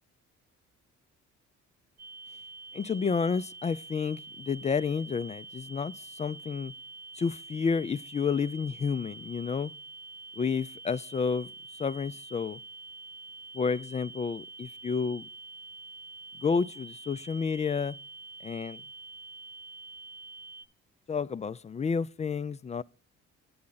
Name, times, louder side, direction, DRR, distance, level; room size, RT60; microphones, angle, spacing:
sound 1, 2.0-20.7, right 3 dB, 55° right, 1.1 m, -46 dB
voice 1, 2.7-6.7 7.2-9.7 10.4-11.5 11.8-12.6 13.5-15.3 16.4-18.0 18.4-18.8 21.1-22.8, left 5 dB, 25° left, 0.3 m, -30 dB
8.6 x 8.4 x 3.9 m
cardioid pair, 90°, 30 cm